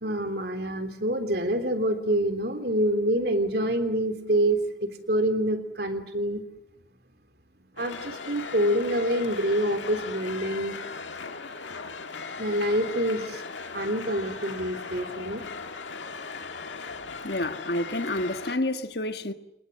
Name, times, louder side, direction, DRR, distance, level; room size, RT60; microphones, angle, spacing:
voice 1, 0.0-6.4 7.8-10.7 12.4-13.4 13.7-15.4, right 1 dB, 60° right, 3.4 m, -26 dB
sound 1, 7.8-18.6, left 4 dB, 90° left, 2.0 m, -38 dB
voice 2, 17.2-19.3, left 1 dB, 60° left, 1.5 m, -29 dB
29.5 x 29.0 x 6.5 m
head